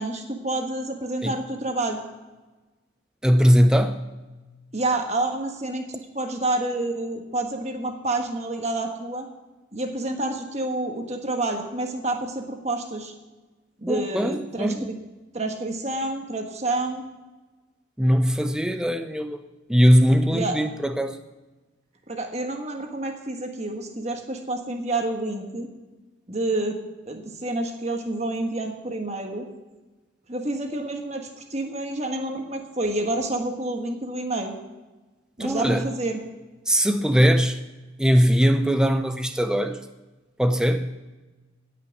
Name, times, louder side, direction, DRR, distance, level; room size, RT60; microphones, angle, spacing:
voice 1, 0.0-2.0 4.7-9.3 9.7-13.1 13.8-14.9 15.3-17.0 20.3-20.6 22.1-25.7 26.3-26.8 27.1-29.5 30.3-34.5 35.4-36.2, right 2 dB, 35° right, 4 dB, 1.4 m, -28 dB
voice 2, 3.2-4.0 13.9-14.9 18.0-19.4 19.7-21.2 35.4-35.8 36.7-37.6 38.0-39.8 40.4-40.9, equal, 5° right, 7 dB, 0.5 m, -20 dB
17.5 x 5.8 x 7.2 m, 1.2 s
head